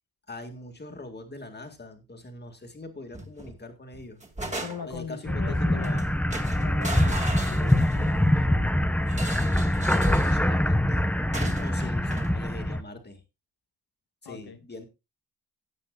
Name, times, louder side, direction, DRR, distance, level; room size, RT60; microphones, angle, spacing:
voice 1, 0.3-4.2 4.8-6.1 9.9-11.0 11.6-13.2 14.2-14.9, left 2 dB, 25° left, 5 dB, 2.0 m, -42 dB
sound 1, 3.1-3.6 3.9-5.1 5.8-6.0 6.3-8.2 9.1-10.4 11.3-12.3, right 1 dB, 20° right, 2.2 m, -36 dB
voice 2, 4.6-6.1 6.6-8.7 11.4-11.6 14.2-14.6, left 6 dB, 85° left, 6 dB, 1.5 m, -39 dB
sound 2, 5.2-12.8, left 1 dB, 5° left, 0.6 m, -24 dB
17.0 x 8.3 x 2.4 m, 0.25 s
wide cardioid pair, 160°, 37 cm